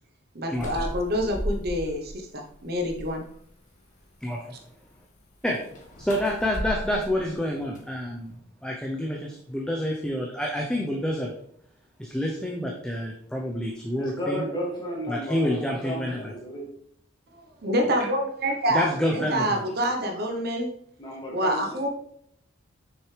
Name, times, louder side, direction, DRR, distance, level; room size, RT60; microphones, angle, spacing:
voice 1, 0.3-3.2 17.3-20.7 21.3-21.9, equal, 45° right, 3 dB, 0.9 m, -27 dB
sound 1, 0.5-2.1 2.5-3.3 5.5-8.4, equal, 35° left, 1.3 m, -36 dB
voice 2, 4.2-4.5 5.4-5.6 6.0-11.3 12.0-14.4 15.1-16.3 18.7-19.6, equal, 5° left, -1 dB, 0.6 m, -28 dB
voice 3, 14.0-16.7 21.0-21.6, equal, 20° left, -3 dB, 2.2 m, -33 dB
6.6 x 6.2 x 3.3 m, 0.70 s
head